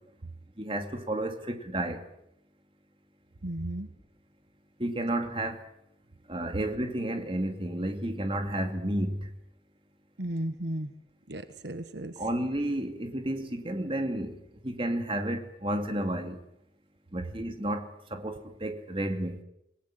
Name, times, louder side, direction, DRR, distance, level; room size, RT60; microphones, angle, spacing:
voice 1, 0.6-2.0 4.8-5.6 6.3-9.3 12.2-16.4 17.1-19.4, right 1 dB, 30° right, 6 dB, 2.6 m, -31 dB
voice 2, 3.4-3.9 10.2-10.9 11.3-12.2, right 1 dB, 65° right, 10 dB, 1.3 m, -34 dB
27.0 x 19.0 x 7.8 m, 0.79 s
head